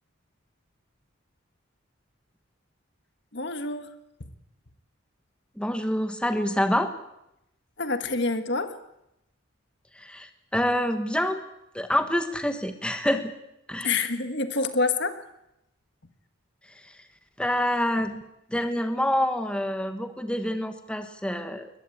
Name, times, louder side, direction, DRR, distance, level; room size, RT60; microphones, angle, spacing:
voice 1, 3.3-3.9 7.8-8.8 13.8-15.2, left 3 dB, 55° left, 9 dB, 1.7 m, -27 dB
voice 2, 5.6-6.9 10.0-11.4 11.7-13.3 13.7-13.9 17.4-18.2 18.5-21.7, left 1 dB, 5° left, 7 dB, 1.4 m, -27 dB
21.5 x 20.5 x 8.7 m, 0.84 s
head